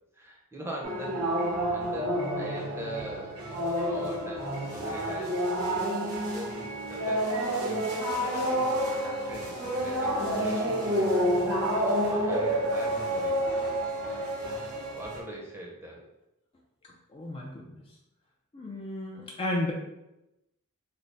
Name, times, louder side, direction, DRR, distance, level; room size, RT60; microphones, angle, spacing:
voice 1, 0.2-5.4 5.7-5.9 6.3-8.8 9.0-13.4 14.9-16.0, equal, 10° right, -2 dB, 0.6 m, -42 dB
sound 1, 0.8-15.2, equal, 85° right, 0.9 m, -29 dB
voice 2, 17.1-17.8 18.5-19.7, left 1 dB, 25° left, -1 dB, 0.3 m, -33 dB
3.3 x 2.0 x 3.8 m, 0.91 s
head